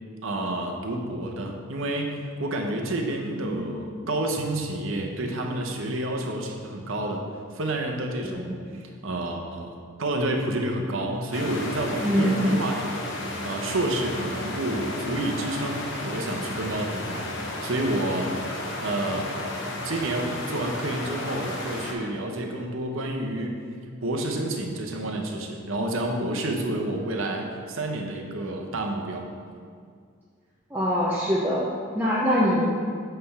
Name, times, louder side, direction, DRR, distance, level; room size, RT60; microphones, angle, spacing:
voice 1, 0.2-7.3 7.5-13.0 13.4-18.5 18.8-19.3 19.8-23.6 24.0-29.3, right 1 dB, 70° right, 2 dB, 0.8 m, -29 dB
sound 1, 11.3-21.9, left 2 dB, 60° left, 0.9 m, -33 dB
voice 2, 12.0-12.4 30.7-31.7 31.9-32.7, equal, 10° right, -7 dB, 0.6 m, -23 dB
7.6 x 3.3 x 5.7 m, 2.2 s
head